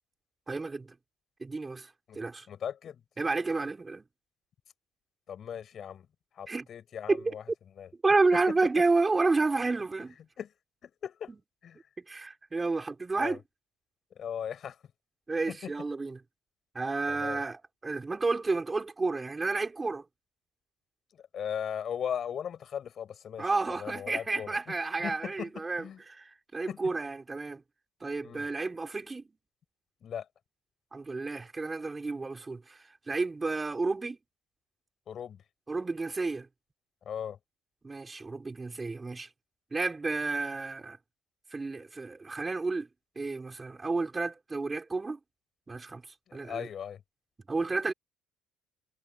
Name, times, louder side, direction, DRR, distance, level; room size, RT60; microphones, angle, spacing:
voice 1, 0.5-0.9 1.4-2.5 3.2-4.0 6.5-6.7 7.1-7.3 8.0-10.2 11.3-11.4 12.0-13.4 15.3-16.2 16.7-20.0 23.4-27.6 28.0-29.3 30.9-32.8 33.1-34.2 35.7-36.5 37.8-39.3 39.7-41.0 41.5-42.9 43.2-45.2 45.7-46.0 46.3-46.7 47.5-47.9, right 3 dB, 20° right, 4.0 m, -31 dB
voice 2, 2.5-3.0 5.3-6.1 6.3-7.4 7.8-7.9 8.5-8.6 10.4-10.5 10.8-11.3 11.6-11.8 13.2-13.4 14.1-14.8 15.5-15.7 17.1-17.4 21.3-24.7 25.0-26.0 26.7-26.8 28.2-28.5 30.0-30.3 35.1-35.4 37.0-37.4 46.3-47.0, left 8 dB, 50° left, 5.0 m, -38 dB
supercardioid pair, 90°, 0 cm